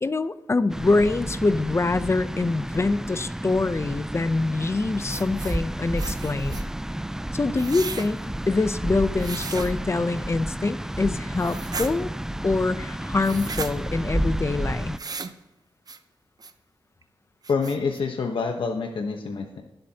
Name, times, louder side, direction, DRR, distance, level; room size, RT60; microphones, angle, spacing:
voice 1, 0.0-6.6 7.3-12.1 12.4-14.9, left 3 dB, 30° left, 13 dB, 0.6 m, -25 dB
sound 1, 0.7-15.0, right 1 dB, 5° right, 0.3 m, -31 dB
sound 2, 5.1-5.6 6.0-6.7 7.6-8.1 9.2-9.7 11.4-11.9 13.2-13.7 15.0-15.3 15.9-16.0 16.4-16.5 17.0-17.1 17.4-18.0, right 4 dB, 45° right, 0.7 m, -35 dB
voice 2, 17.5-19.6, left 4 dB, 75° left, 3 dB, 1.0 m, -27 dB
20.5 x 7.9 x 2.9 m, 1.0 s
cardioid pair, 75°, 9 cm